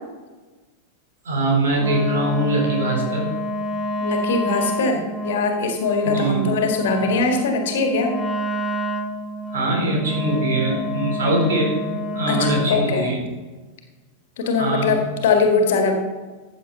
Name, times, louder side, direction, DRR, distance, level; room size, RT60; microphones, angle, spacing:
voice 1, 1.2-3.3 6.0-6.5 9.5-11.8 12.1-13.2 14.6-15.0, right 2 dB, 60° right, -1 dB, 3.8 m, -22 dB
Wind instrument woodwind instrument, 1.8-12.8, equal, ahead, 1.3 m, -28 dB
voice 2, 4.0-8.1 12.3-13.1 14.4-15.9, left 4 dB, 55° left, 4 dB, 1.7 m, -21 dB
13.5 x 8.2 x 4.0 m, 1.3 s
figure-of-eight pair, 90°, 0 cm